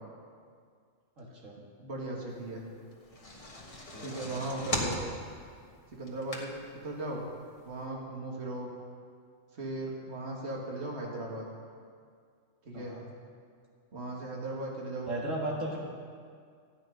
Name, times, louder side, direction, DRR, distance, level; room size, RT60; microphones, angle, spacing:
voice 1, 1.2-1.5 3.9-4.2 12.7-13.0 15.1-15.8, right 1 dB, 80° right, -3 dB, 2.1 m, -36 dB
voice 2, 1.8-2.6 4.0-5.0 5.9-6.5 6.8-7.2 7.7-8.7 9.5-11.5 12.6-13.0 13.9-15.1, right 2 dB, 55° right, -2 dB, 2.2 m, -37 dB
sound 1, 2.9-6.8 7.3-7.4 7.7-7.8, left 1 dB, 25° left, 1.5 m, -37 dB
14.0 x 6.1 x 9.7 m, 2.1 s
omnidirectional pair, 1.3 m